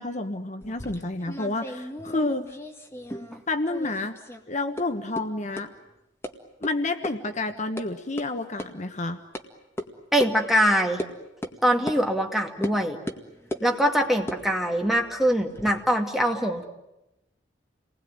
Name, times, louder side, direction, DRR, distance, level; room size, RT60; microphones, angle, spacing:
voice 1, 0.0-2.5 3.5-4.2 4.5-5.7 6.6-9.2, left 2 dB, 40° left, 7 dB, 1.3 m, -29 dB
sound 1, 0.6-3.4 3.7-4.4 4.8-4.9 5.2-5.3 5.6-5.7 6.2-6.3 6.6-6.7 7.0-7.1 7.5-7.9 8.2-8.3 8.6-8.7 9.3-9.4 9.8-9.9 10.2-10.3 11.0-11.1 11.4-11.6 11.9-12.0 12.6-12.8 13.1-13.7 14.2-15.7, equal, 15° left, 1.9 m, -35 dB
voice 2, 10.1-11.0 11.6-13.0 13.6-16.6, equal, ahead, 2 dB, 2.4 m, -23 dB
29.0 x 20.5 x 9.5 m, 0.93 s
head